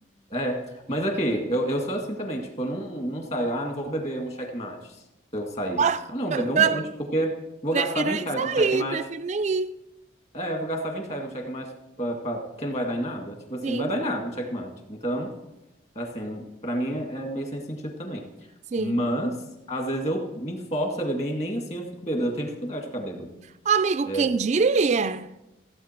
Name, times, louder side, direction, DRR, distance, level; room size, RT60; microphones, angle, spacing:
voice 1, 0.3-5.0 5.3-5.8 6.1-6.8 7.1-9.0 10.3-11.7 12.0-15.3 16.0-18.2 18.8-19.3 19.7-23.3 24.1-24.3, right 1 dB, 35° left, 1.9 m, -29 dB
voice 2, 6.3-6.9 7.7-9.8 13.6-13.9 18.7-19.0 23.6-25.3, right 5 dB, 35° right, 0.3 m, -24 dB
16.0 x 8.3 x 4.4 m
head